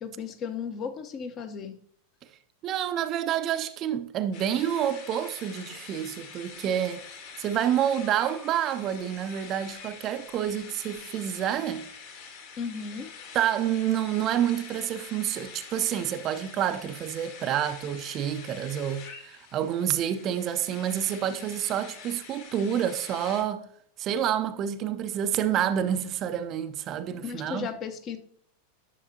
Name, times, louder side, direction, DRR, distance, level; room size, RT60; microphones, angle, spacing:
voice 1, 0.0-1.8 12.6-13.1 27.2-28.2, left 6 dB, 30° left, 0.8 m, -35 dB
voice 2, 2.6-7.0 7.4-11.9 13.3-23.7 24.0-27.7, right 10 dB, 35° right, 0.5 m, -28 dB
sound 1, 4.3-23.4, left 5 dB, 50° left, 2.1 m, -45 dB
10.5 x 6.5 x 2.7 m
figure-of-eight pair, 90°, 0 cm